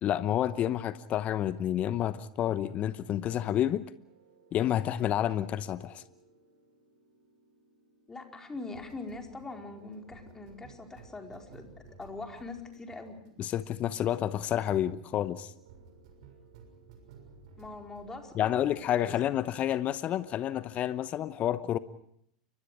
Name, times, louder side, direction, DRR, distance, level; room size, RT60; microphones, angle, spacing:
voice 1, 0.0-3.8 4.5-6.0 13.4-15.5 18.3-21.8, left 11 dB, 35° left, 0.9 m, -29 dB
sound 1, 3.9-18.2 18.5-18.9, right 5 dB, 60° right, 6.4 m, -56 dB
voice 2, 8.1-13.2 17.6-18.7 19.0-19.2, left 3 dB, 15° left, 4.6 m, -43 dB
29.5 x 24.5 x 4.9 m
figure-of-eight pair, 90°, 4 cm